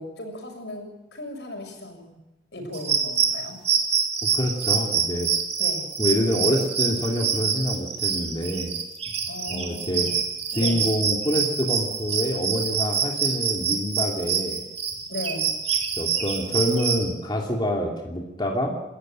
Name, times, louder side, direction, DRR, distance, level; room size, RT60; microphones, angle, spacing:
voice 1, 0.0-2.2 2.5-3.6 5.6-5.8 9.3-10.0 10.5-10.9 15.1-15.5, left 1 dB, 75° left, 4 dB, 6.6 m, -36 dB
sound 1, 2.7-17.0, right 6 dB, 35° right, 3.6 m, -26 dB
voice 2, 4.2-5.3 6.0-8.8 9.5-10.1 10.5-14.6 16.0-18.8, equal, 25° left, 0 dB, 2.7 m, -26 dB
29.0 x 14.0 x 9.1 m, 1.0 s
head